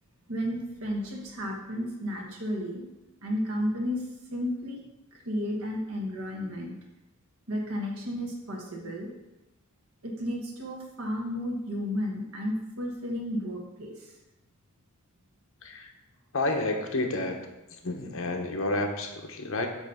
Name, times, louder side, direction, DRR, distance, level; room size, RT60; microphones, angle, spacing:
voice 1, 0.3-2.8 3.2-4.0 4.3-4.8 5.1-6.7 7.5-9.1 10.0-14.1, equal, 80° right, 0 dB, 1.3 m, -32 dB
voice 2, 15.6-15.9 16.3-17.4 17.7-19.7, left 2 dB, 65° left, 3 dB, 0.9 m, -30 dB
8.2 x 3.1 x 5.5 m, 0.97 s
head